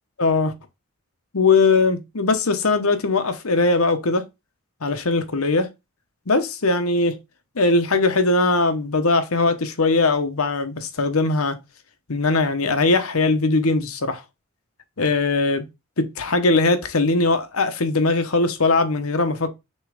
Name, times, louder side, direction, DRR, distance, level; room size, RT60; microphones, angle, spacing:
voice 1, 0.2-0.5 1.3-4.2 4.8-5.7 6.3-7.2 7.6-11.5 12.1-14.2 15.0-15.6 16.0-19.5, left 3 dB, 80° left, 1.0 m, -20 dB
6.4 x 3.2 x 5.0 m
head